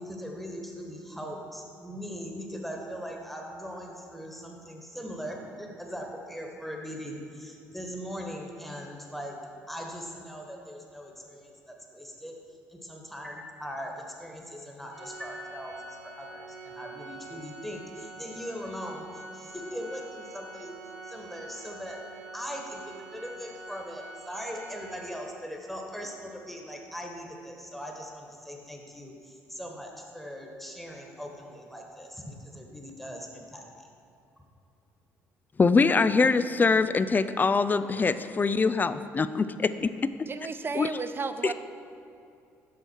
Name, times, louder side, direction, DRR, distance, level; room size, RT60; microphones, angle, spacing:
voice 1, 0.0-9.3 9.7-12.3 12.7-20.8 21.0-22.0 22.3-33.8, equal, ahead, 0 dB, 1.4 m, -40 dB
Organ, 14.9-25.6, right 2 dB, 90° right, 0.8 m, -45 dB
voice 2, 35.6-39.9 40.8-40.9 41.4-41.5, left 4 dB, 25° left, 13 dB, 0.4 m, -23 dB
voice 3, 40.3-41.5, right 5 dB, 35° right, 10 dB, 0.5 m, -33 dB
8.5 x 5.6 x 4.6 m, 2.6 s
hypercardioid pair, 55°, 7 cm